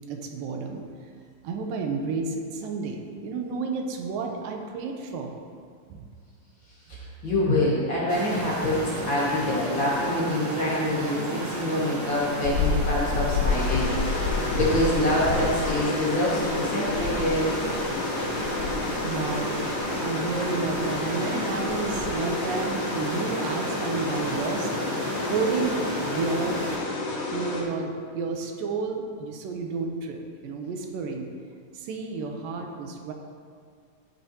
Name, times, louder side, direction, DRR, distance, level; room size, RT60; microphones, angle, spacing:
voice 1, 0.1-0.8 1.4-5.4 5.9-6.1 18.2-18.7 19.0-19.5 20.0-24.8 25.2-26.6 27.3-31.3 31.7-33.1, right 4 dB, 85° right, 3 dB, 2.6 m, -31 dB
voice 2, 6.9-17.6, left 1 dB, 40° left, -8 dB, 2.3 m, -26 dB
sound 1, 8.1-26.8, right 1 dB, 50° right, 1.5 m, -33 dB
sound 2, 12.4-22.1, left 5 dB, 80° left, 1.8 m, -31 dB
sound 3, 13.5-27.6, left 2 dB, 60° left, 2.8 m, -32 dB
13.5 x 9.1 x 3.0 m, 2.1 s
omnidirectional pair, 3.9 m